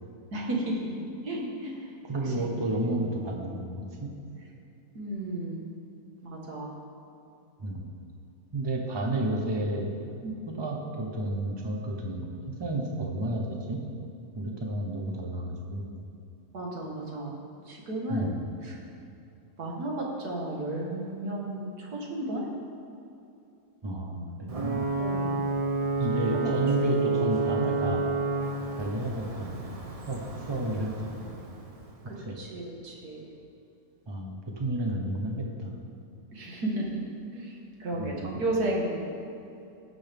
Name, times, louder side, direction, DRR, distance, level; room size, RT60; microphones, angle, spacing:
voice 1, 0.3-0.9 1.2-1.9 2.2-2.9 5.0-5.7 6.2-6.8 10.2-10.4 16.5-17.3 17.7-18.3 18.6-18.8 19.6-22.5 25.0-25.4 26.1-26.6 32.1-33.3 36.3-37.0 37.3-39.1, right 1 dB, 70° right, -2 dB, 2.2 m, -33 dB
voice 2, 2.0-4.1 7.6-7.9 8.5-9.9 10.5-13.8 14.4-15.9 18.1-18.4 23.8-24.8 26.0-28.1 28.8-29.7 30.1-30.2 30.5-31.3 32.2-32.4 34.1-35.8 38.0-38.3, right 1 dB, 20° right, 0 dB, 0.9 m, -31 dB
Ocean / Boat Water vehicle / Alarm, 24.5-32.0, right 3 dB, 35° right, 0.5 m, -30 dB
17.0 x 6.2 x 3.6 m, 2.7 s
omnidirectional pair, 1.7 m